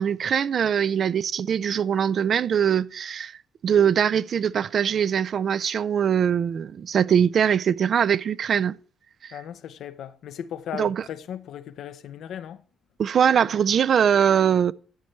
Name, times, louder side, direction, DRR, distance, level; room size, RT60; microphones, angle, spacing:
voice 1, 0.0-3.4 3.6-8.8 9.2-9.3 10.7-11.0 13.0-14.7, right 8 dB, 55° right, 0.4 m, -22 dB
voice 2, 9.3-12.6, left 9 dB, 75° left, 0.7 m, -37 dB
12.5 x 9.2 x 3.2 m
cardioid pair, 90°, 0 cm